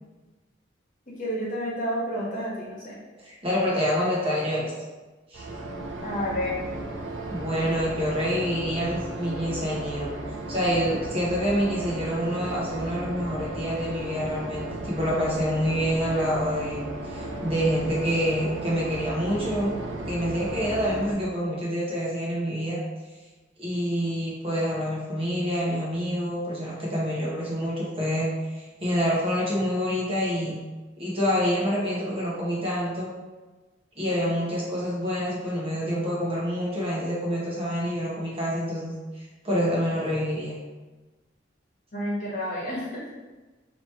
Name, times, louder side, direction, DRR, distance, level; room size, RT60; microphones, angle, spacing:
voice 1, 1.1-3.0 6.0-6.6 41.9-43.0, equal, 45° left, -6 dB, 1.2 m, -30 dB
voice 2, 3.2-4.7 5.3-5.5 7.3-10.1 10.5-19.7 20.1-22.8 23.6-30.6 31.0-33.1 34.0-40.6, equal, 30° right, -6 dB, 1.0 m, -27 dB
sound 1, 5.3-21.1, right 2 dB, 85° right, 0.5 m, -35 dB
3.0 x 2.9 x 4.4 m, 1.2 s
head